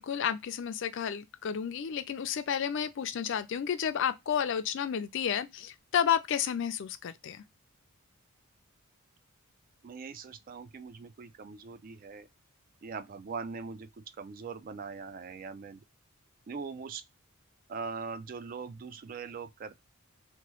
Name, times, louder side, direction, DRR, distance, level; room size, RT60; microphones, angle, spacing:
voice 1, 0.0-7.4, left 8 dB, 55° left, 0.4 m, -31 dB
voice 2, 9.8-12.3 12.8-15.8 16.5-17.0 17.7-19.9, right 5 dB, 40° right, 0.3 m, -41 dB
2.9 x 2.2 x 3.0 m
head